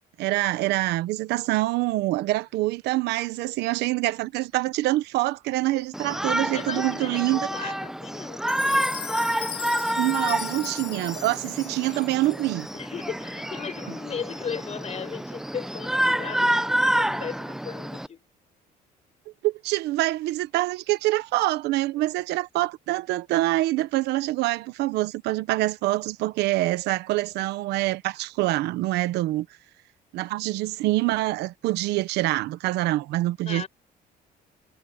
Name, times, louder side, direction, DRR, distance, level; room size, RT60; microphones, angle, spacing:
voice 1, 0.0-7.7 10.0-12.7 19.4-29.5 30.1-33.6, right 17 dB, 85° right, 1.1 m, -25 dB
Shout, 5.9-18.1, right 1 dB, 5° right, 0.7 m, -28 dB
voice 2, 6.5-8.9 12.7-18.2 33.4-33.7, left 7 dB, 40° left, 7.6 m, -36 dB
Chime, 8.5-12.7, left 10 dB, 60° left, 3.8 m, -38 dB
cardioid pair, 110°, 17 cm